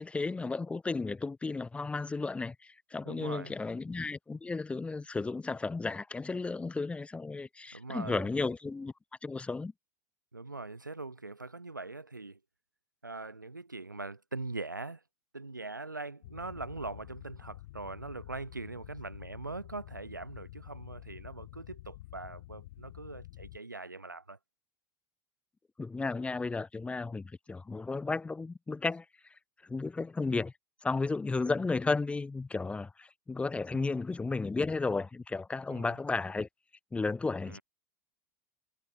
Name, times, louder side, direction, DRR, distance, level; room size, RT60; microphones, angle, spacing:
voice 1, 0.0-8.9 9.2-9.7 25.8-29.0 29.6-30.5 30.8-36.5 36.9-37.6, left 3 dB, 10° left, 0.8 m, -33 dB
voice 2, 3.1-3.6 7.7-8.3 10.3-12.4 13.0-15.0 15.3-24.4 33.7-34.0 35.7-35.9 37.5-37.6, right 3 dB, 90° right, 5.4 m, -42 dB
sound 1, 16.2-23.6, left 17 dB, 60° left, 2.7 m, -49 dB
figure-of-eight pair, 80°, 10 cm